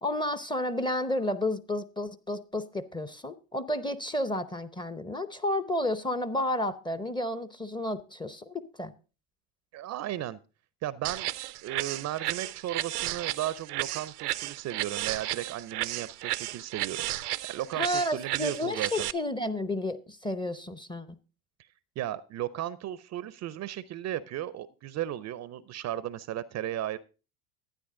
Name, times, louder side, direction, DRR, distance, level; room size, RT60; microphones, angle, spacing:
voice 1, 0.0-8.9 17.8-21.1, left 1 dB, 10° left, 0.7 m, -31 dB
voice 2, 9.7-10.4 10.8-11.3 11.6-17.1 17.5-19.1 22.0-27.0, right 12 dB, 35° right, 0.5 m, -35 dB
sound 1, 11.0-19.1, right 16 dB, 85° right, 0.6 m, -33 dB
11.5 x 9.7 x 3.7 m
hypercardioid pair, 75°, 46 cm